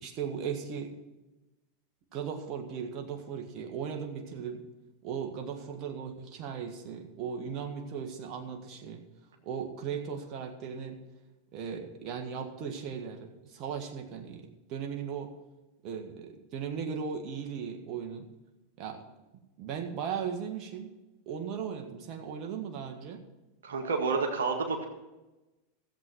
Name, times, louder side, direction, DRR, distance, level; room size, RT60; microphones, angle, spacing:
voice 1, 0.0-0.9 2.1-4.6 5.0-9.0 9.4-11.0 11.5-15.3 15.8-18.3 18.8-19.0 19.6-20.9 21.3-23.2, right 7 dB, 45° right, 2 dB, 1.7 m, -37 dB
voice 2, 23.6-24.8, right 4 dB, 80° right, 3 dB, 1.7 m, -29 dB
14.5 x 8.0 x 6.1 m, 1.0 s
hypercardioid pair, 95°, 0 cm